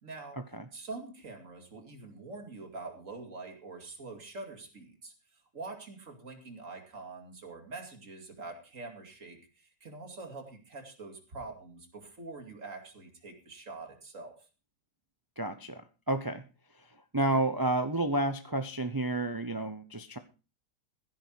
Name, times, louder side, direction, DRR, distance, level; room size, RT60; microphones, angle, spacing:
voice 1, 0.0-0.4 0.7-14.5, right 3 dB, 45° right, 5 dB, 2.9 m, -45 dB
voice 2, 15.4-16.4 16.8-20.2, right 2 dB, 20° right, 9 dB, 0.5 m, -31 dB
15.5 x 10.0 x 4.6 m, 0.33 s
omnidirectional pair, 1.9 m